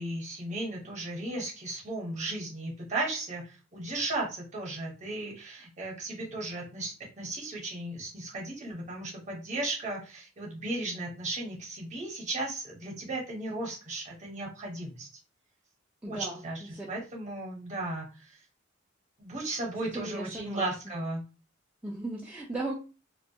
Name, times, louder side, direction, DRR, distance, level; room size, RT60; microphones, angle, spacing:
voice 1, 0.0-15.1 16.1-18.4 19.2-21.2, right 2 dB, 40° right, -1 dB, 0.8 m, -35 dB
voice 2, 16.0-16.4 16.7-16.9 19.8-21.0 21.8-22.7, right 2 dB, 5° right, -5 dB, 0.3 m, -36 dB
2.2 x 2.1 x 2.6 m, 0.34 s
head